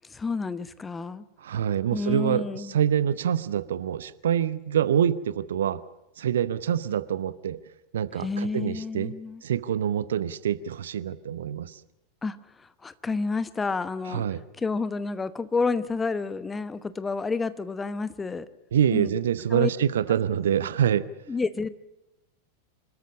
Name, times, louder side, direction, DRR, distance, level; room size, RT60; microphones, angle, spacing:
voice 1, 0.1-1.2 1.9-2.8 8.1-9.4 12.2-14.2 14.6-18.5 18.9-19.2 19.5-19.7 20.1-20.2 21.3-21.7, left 4 dB, 15° left, 15 dB, 1.0 m, -30 dB
voice 2, 1.4-5.8 6.2-7.6 7.9-9.1 9.4-11.7 14.1-14.4 18.7-21.1, right 9 dB, 60° right, 17 dB, 0.8 m, -26 dB
26.5 x 13.5 x 8.6 m, 1.0 s
figure-of-eight pair, 90°, 0 cm